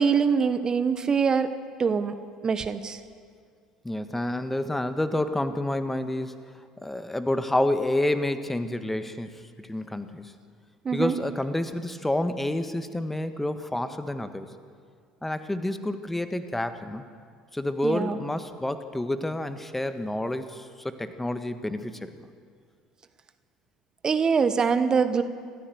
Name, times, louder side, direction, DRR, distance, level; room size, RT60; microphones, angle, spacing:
voice 1, 0.0-1.5 1.8-2.2 2.4-3.0 10.8-11.1 17.8-18.2 24.0-25.2, right 6 dB, 30° right, 10 dB, 1.3 m, -23 dB
voice 2, 3.8-6.4 6.8-9.3 9.6-10.3 10.9-14.5 15.2-17.0 17.5-22.1, left 1 dB, 10° left, 10 dB, 1.6 m, -29 dB
27.0 x 14.5 x 7.9 m, 2.1 s
figure-of-eight pair, 60°, 2 cm